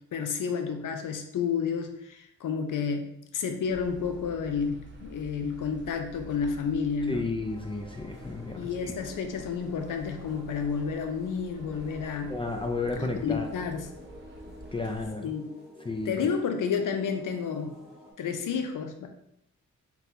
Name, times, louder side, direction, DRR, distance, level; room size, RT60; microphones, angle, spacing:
voice 1, 0.1-3.1 3.3-7.2 8.6-12.3 13.0-13.9 15.2-15.5 16.1-17.8 18.2-19.1, left 6 dB, 80° left, 5 dB, 0.5 m, -30 dB
sound 1, 3.7-15.1, right 1 dB, 40° right, 0.6 m, -49 dB
voice 2, 7.1-8.9 12.3-13.5 14.7-15.3 15.8-16.1, left 3 dB, 20° left, 3 dB, 0.3 m, -32 dB
sound 2, 7.4-18.1, equal, ahead, 1.1 m, -50 dB
3.8 x 2.3 x 2.7 m, 0.76 s
cardioid pair, 80°, 31 cm